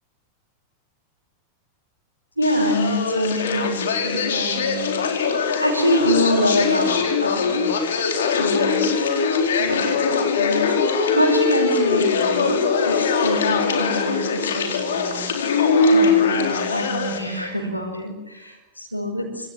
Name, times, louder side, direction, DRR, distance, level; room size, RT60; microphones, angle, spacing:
sound 1, 2.4-17.2, left 4 dB, 65° left, 4.3 m, -21 dB
voice 1, 2.4-7.7 8.3-9.1 9.6-10.0 10.3-15.3 15.6-19.5, equal, 85° right, -3 dB, 5.4 m, -25 dB
27.5 x 26.5 x 7.7 m, 1.0 s
figure-of-eight pair, 90°, 0 cm